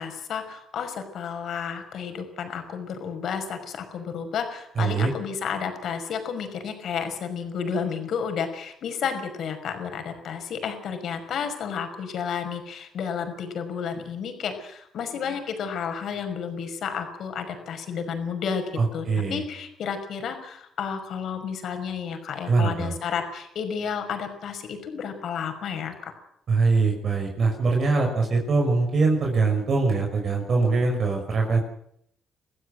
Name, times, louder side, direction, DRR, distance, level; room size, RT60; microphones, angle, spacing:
voice 1, 0.0-26.1, left 6 dB, 70° left, 7 dB, 5.6 m, -31 dB
voice 2, 4.8-5.1 18.8-19.4 22.5-22.9 26.5-31.6, right 4 dB, 50° right, 2 dB, 5.5 m, -22 dB
24.5 x 15.5 x 7.9 m, 0.70 s
cardioid pair, 90°, 0 cm